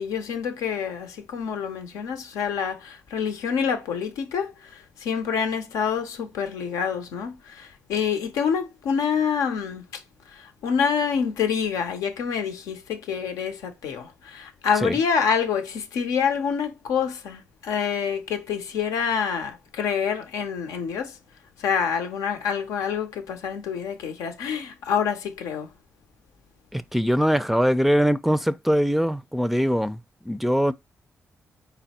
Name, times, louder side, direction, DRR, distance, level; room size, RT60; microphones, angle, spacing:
voice 1, 0.0-21.2 21.6-25.7, left 7 dB, 85° left, 0.7 m, -27 dB
voice 2, 26.7-30.0 30.2-30.7, equal, 5° right, 0.4 m, -22 dB
4.0 x 2.1 x 4.2 m
supercardioid pair, 50°, 6 cm